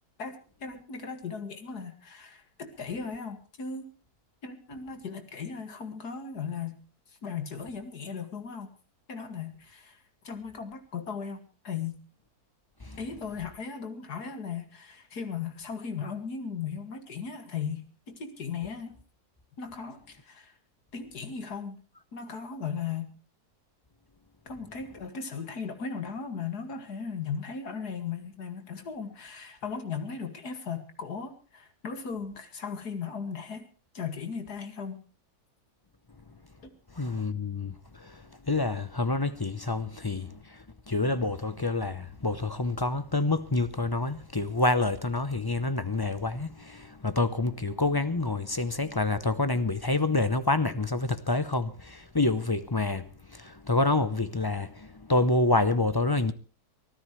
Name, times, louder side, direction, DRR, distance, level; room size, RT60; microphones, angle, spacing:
voice 1, 0.2-3.9 4.4-6.8 7.1-8.7 9.1-12.0 13.0-19.0 19.6-20.6 20.9-21.8 22.1-23.1 24.5-33.7 33.9-35.0 36.6-36.7, left 6 dB, 85° left, 2.6 m, -37 dB
voice 2, 37.0-38.1 38.5-40.4 40.9-53.0 53.3-56.3, left 2 dB, 25° left, 0.5 m, -27 dB
24.5 x 15.0 x 3.2 m
omnidirectional pair, 1.6 m